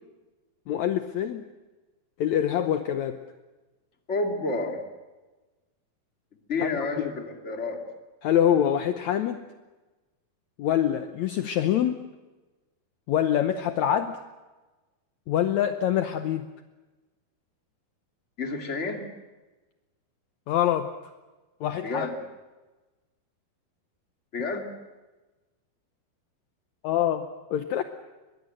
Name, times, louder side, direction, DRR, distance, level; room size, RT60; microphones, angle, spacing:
voice 1, 0.7-1.4 2.2-3.2 6.6-6.7 8.2-9.4 10.6-12.0 13.1-14.2 15.3-16.5 20.5-20.9 21.6-22.1 26.8-27.8, left 10 dB, 75° left, 8 dB, 1.7 m, -25 dB
voice 2, 4.1-4.8 6.5-7.8 18.4-19.0 21.8-22.2 24.3-24.7, left 3 dB, 20° left, 3 dB, 2.2 m, -30 dB
23.5 x 22.0 x 7.7 m, 1.2 s
omnidirectional pair, 4.4 m